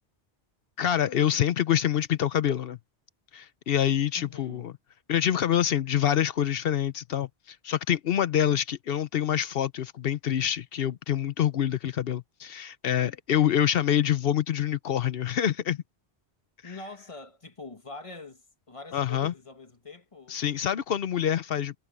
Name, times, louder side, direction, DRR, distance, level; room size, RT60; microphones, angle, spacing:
voice 1, 0.8-2.8 3.3-4.7 5.1-15.8 18.9-19.3 20.3-21.7, left 10 dB, 65° left, 0.8 m, -26 dB
voice 2, 4.2-4.7 16.6-18.4 18.7-20.4, left 3 dB, 30° left, 1.7 m, -44 dB
omnidirectional pair, 1.1 m